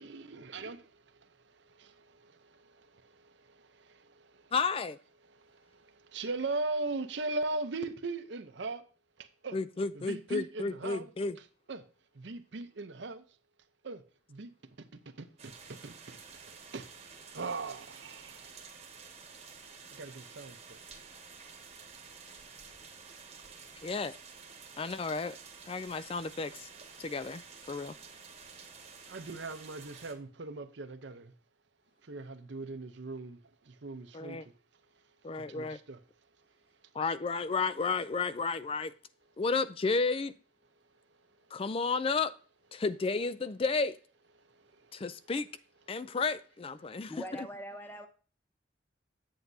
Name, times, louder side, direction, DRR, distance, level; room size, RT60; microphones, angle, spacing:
voice 1, 0.0-4.5 5.3-8.9 9.2-9.6 9.9-11.1 11.7-11.9 12.1-13.2 13.8-14.0 14.3-14.5 14.8-18.6 19.9-20.8 29.1-31.3 32.0-34.5 35.3-36.0 40.9-41.0 44.4-45.0 45.9-46.1 46.8-46.9, right 3 dB, 70° right, 0.7 m, -40 dB
voice 2, 4.5-5.0 9.5-11.4 23.8-24.1 24.8-25.4 25.7-26.7 27.0-27.4 27.7-28.0 34.1-34.5 35.2-35.8 36.9-38.9 39.4-40.3 41.5-42.3 42.7-44.0 44.9-45.5 45.9-47.1 47.4-47.5, left 4 dB, 30° left, 0.3 m, -32 dB
sound 1, 15.4-30.1, right 5 dB, 35° right, 1.2 m, -51 dB
voice 3, 47.1-48.1, equal, 10° left, 0.7 m, -42 dB
8.4 x 7.9 x 2.7 m
head